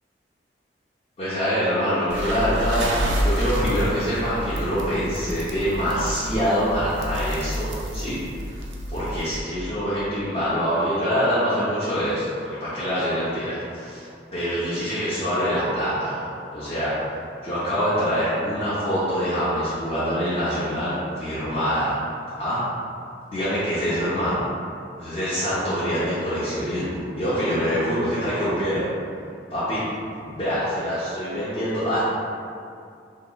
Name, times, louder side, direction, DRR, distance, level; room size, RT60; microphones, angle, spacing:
voice 1, 1.2-2.9 3.2-8.2 8.4-8.6 8.9-12.3 12.6-14.0 14.3-16.3 16.5-16.9 17.4-22.0 22.3-22.6 23.3-24.4 25.0-28.8 29.5-29.9 30.2-32.0, equal, 35° left, -12 dB, 0.6 m, -25 dB
sound 1, 2.1-9.4, equal, 90° right, 0.4 m, -29 dB
2.9 x 2.8 x 2.2 m, 2.4 s
head